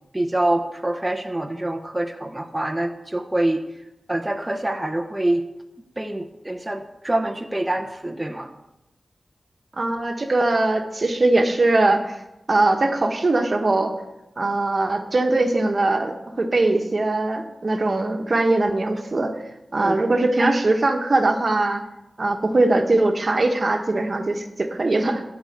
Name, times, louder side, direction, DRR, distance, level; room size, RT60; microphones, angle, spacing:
voice 1, 0.1-3.8 4.1-5.4 6.0-8.5 19.8-20.0 20.4-20.5, right 1 dB, 20° right, 4 dB, 0.9 m, -25 dB
voice 2, 9.8-12.2 12.5-14.0 14.4-19.3 19.7-21.8 22.2-25.2, right 2 dB, 55° right, 5 dB, 1.3 m, -21 dB
13.0 x 4.8 x 8.0 m, 0.94 s
cardioid pair, 50°, 0 cm